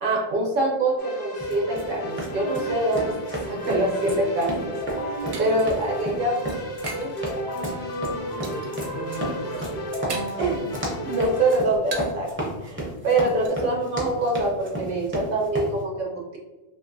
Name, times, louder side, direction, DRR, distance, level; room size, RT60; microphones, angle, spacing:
voice 1, 0.0-4.7 5.0-6.4 6.9-7.2 10.4-10.7 11.0-16.4, right 2 dB, 60° right, -1 dB, 0.8 m, -25 dB
Keyboard (musical), 1.0-11.6, right 1 dB, 80° left, 0.9 m, -33 dB
sound 1, 1.4-15.7, right 1 dB, 15° right, 0.5 m, -33 dB
sound 2, 4.7-7.2 7.5-8.0 8.4-8.9 9.3-10.5 10.9-12.3 12.6-12.7 13.0-13.5, right 3 dB, 85° right, 0.9 m, -40 dB
voice 2, 5.2-5.7 8.0-9.8, right 1 dB, 60° left, -2 dB, 0.3 m, -37 dB
2.8 x 2.5 x 2.6 m, 1.1 s
omnidirectional pair, 1.1 m